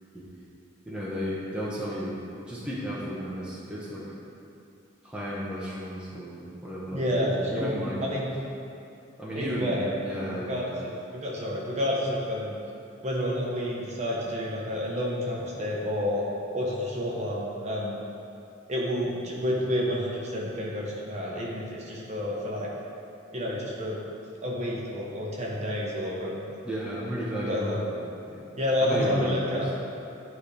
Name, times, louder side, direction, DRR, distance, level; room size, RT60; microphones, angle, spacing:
voice 1, 0.9-2.2 2.5-4.0 5.0-8.0 9.2-10.7 26.6-28.0 28.3-28.4 28.8-29.7, equal, 5° right, -8 dB, 1.0 m, -34 dB
voice 2, 6.9-7.7 8.0-8.3 9.3-12.5 13.0-16.2 16.5-18.0 18.7-22.7 23.3-24.0 24.4-26.4 27.3-27.8 28.6-29.7, equal, 35° right, -4 dB, 1.1 m, -29 dB
11.0 x 5.0 x 3.4 m, 2.6 s
head